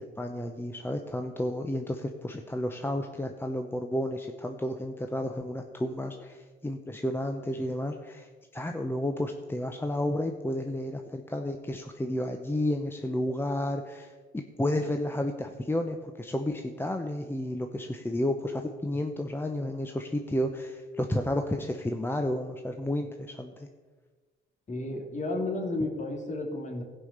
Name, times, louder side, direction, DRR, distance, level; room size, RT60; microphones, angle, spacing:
voice 1, 0.0-23.7, left 1 dB, 10° left, 5 dB, 0.8 m, -32 dB
voice 2, 24.7-26.8, left 2 dB, 35° left, 2 dB, 2.7 m, -32 dB
16.0 x 5.6 x 6.7 m, 1.4 s
cardioid pair, 90°, 20 cm